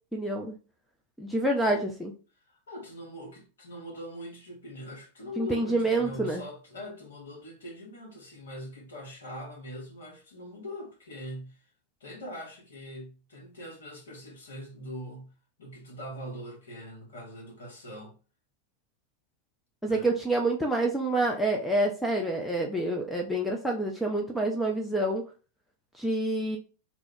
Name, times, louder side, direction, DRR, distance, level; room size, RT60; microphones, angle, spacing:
voice 1, 0.1-0.6 1.2-2.1 5.4-6.4 19.8-25.2 26.0-26.6, right 2 dB, 5° left, 0.4 m, -27 dB
voice 2, 2.5-11.6 12.0-15.3 15.6-18.2 19.8-20.1, equal, 65° left, 0.8 m, -42 dB
2.2 x 2.0 x 3.6 m
figure-of-eight pair, 90°, 0 cm